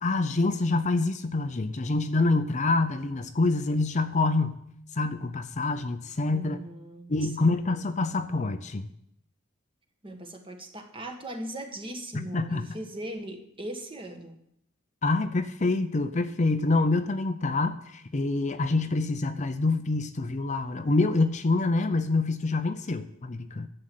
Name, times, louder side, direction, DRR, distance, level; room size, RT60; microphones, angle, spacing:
voice 1, 0.0-4.6 5.0-6.6 7.1-8.9 12.1-12.7 15.0-23.7, left 3 dB, 35° left, 9 dB, 0.6 m, -26 dB
voice 2, 6.3-7.8 10.0-14.4, right 1 dB, 25° right, 4 dB, 1.6 m, -39 dB
11.5 x 7.8 x 7.7 m, 0.73 s
head